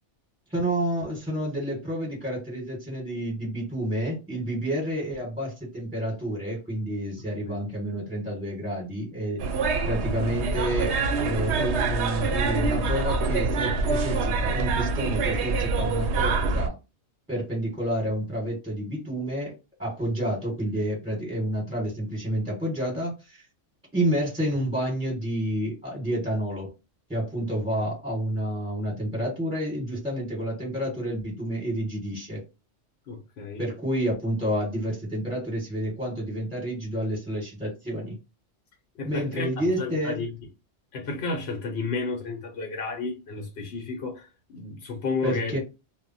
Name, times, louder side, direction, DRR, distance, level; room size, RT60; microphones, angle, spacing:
voice 1, 0.5-9.4 9.8-16.8 17.3-19.5 19.8-23.4 23.9-26.7 27.1-32.4 33.6-38.2 39.0-40.2 45.2-45.6, right 1 dB, 5° right, 1.1 m, -29 dB
sound 1, 9.4-16.7, right 3 dB, 70° right, 0.8 m, -25 dB
voice 2, 33.1-33.6 39.0-39.5 39.8-40.3 40.9-45.6, left 4 dB, 60° left, 0.9 m, -32 dB
2.2 x 2.1 x 3.8 m
omnidirectional pair, 1.2 m